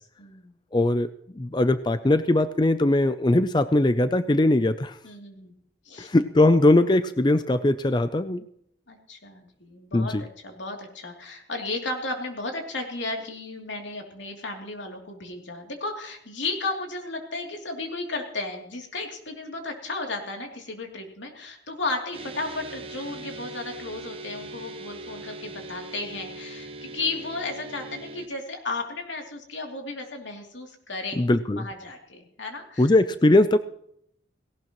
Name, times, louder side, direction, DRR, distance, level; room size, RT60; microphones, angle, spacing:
voice 1, 0.2-0.5 5.0-5.5 5.8-6.1 8.9-31.2 31.6-32.9, left 3 dB, 90° left, 2 dB, 2.9 m, -34 dB
voice 2, 0.7-1.1 1.3-5.0 6.0-8.4 9.9-10.2 31.1-31.6 32.8-33.6, left 2 dB, 25° left, 12 dB, 0.4 m, -20 dB
sound 1, 22.1-28.3, right 2 dB, 30° right, 1.0 m, -40 dB
18.0 x 17.5 x 3.0 m, 0.70 s
head